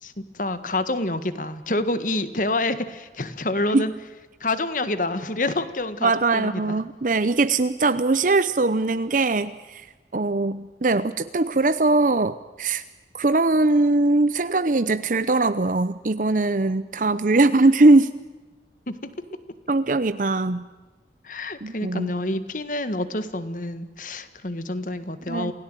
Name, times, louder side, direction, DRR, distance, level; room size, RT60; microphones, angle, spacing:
voice 1, 0.0-3.9 4.4-6.8 18.9-19.0 21.2-25.5, left 2 dB, 45° left, 12 dB, 1.7 m, -27 dB
voice 2, 6.0-9.9 10.1-12.8 13.1-18.1 19.7-20.7 21.6-22.1 25.3-25.5, right 2 dB, 45° right, 12 dB, 0.7 m, -21 dB
28.0 x 17.5 x 9.1 m, 1.2 s
head